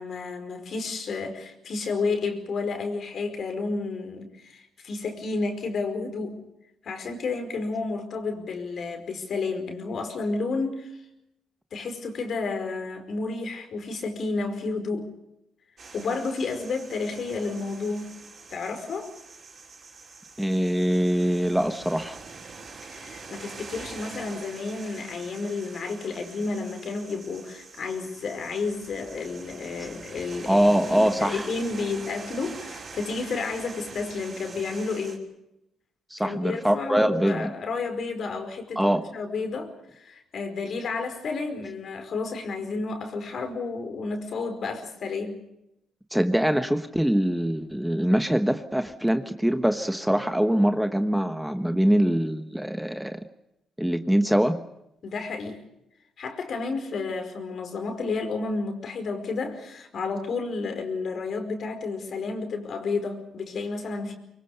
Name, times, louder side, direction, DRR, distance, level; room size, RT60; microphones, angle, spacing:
voice 1, 0.0-6.4 6.8-11.0 11.7-15.1 15.9-18.2 18.5-19.1 22.8-35.2 36.2-45.4 55.0-55.6 56.2-64.1, left 4 dB, 55° left, 6 dB, 5.0 m, -31 dB
sound 1, 15.8-35.2, right 4 dB, 45° right, 5.6 m, -44 dB
voice 2, 20.4-22.2 30.5-31.5 36.1-37.5 38.8-39.0 46.1-53.2 53.8-54.6, equal, 5° right, 8 dB, 1.2 m, -23 dB
25.0 x 23.0 x 6.8 m, 0.84 s
cardioid pair, 90°, 0 cm